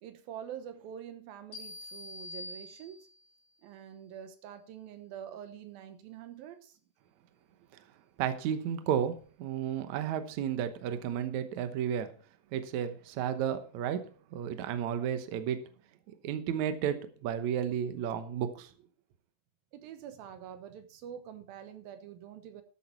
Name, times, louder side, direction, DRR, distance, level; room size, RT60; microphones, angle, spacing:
voice 1, 0.0-3.0 3.6-6.8 19.7-22.6, right 9 dB, 85° right, 9 dB, 2.8 m, -46 dB
sound 1, 1.5-3.3, left 2 dB, 55° left, 4.7 m, -45 dB
voice 2, 8.2-12.1 12.5-15.6 16.2-18.7, right 9 dB, 65° right, 9 dB, 2.0 m, -32 dB
13.0 x 8.6 x 4.4 m, 0.41 s
omnidirectional pair, 4.2 m